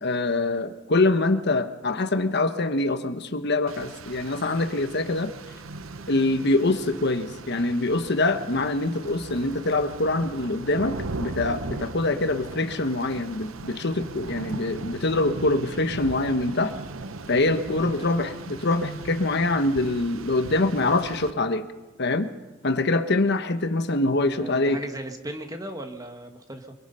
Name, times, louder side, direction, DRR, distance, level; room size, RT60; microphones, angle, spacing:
voice 1, 0.0-5.3 6.1-16.7 17.3-21.7 22.0-22.3 22.6-24.8, left 2 dB, 55° left, 9 dB, 1.2 m, -24 dB
Rain, 3.7-21.3, right 3 dB, 85° right, 0.9 m, -38 dB
voice 2, 17.9-18.2 24.3-26.7, right 1 dB, 20° right, 5 dB, 1.9 m, -37 dB
24.5 x 23.0 x 5.6 m, 1.2 s
head